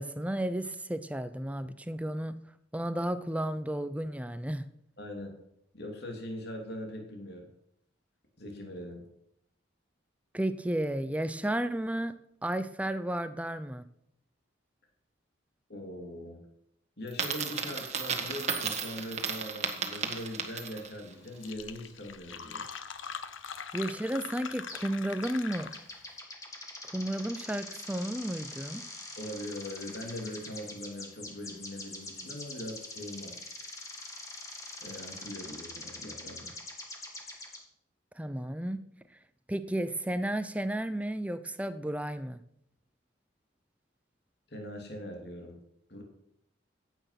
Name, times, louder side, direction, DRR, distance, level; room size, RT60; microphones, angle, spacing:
voice 1, 0.0-2.3 2.7-4.7 10.3-12.1 12.4-13.8 23.7-25.7 26.8-28.8 38.2-38.8 39.5-42.4, right 1 dB, 5° right, 12 dB, 0.6 m, -33 dB
voice 2, 5.0-5.3 5.7-7.5 8.4-9.0 15.7-16.4 17.0-22.6 29.2-33.4 34.8-36.5 44.5-45.6 45.9-46.0, left 1 dB, 55° left, 1 dB, 3.0 m, -41 dB
Coin (dropping), 17.1-21.0, right 5 dB, 35° right, 1.6 m, -34 dB
Fill (with liquid), 21.0-21.1 21.3-26.1, left 6 dB, 85° left, 1.0 m, -42 dB
sound 1, 24.7-24.9 25.2-37.6, left 2 dB, 15° left, 2.1 m, -44 dB
16.0 x 9.2 x 5.9 m, 0.74 s
head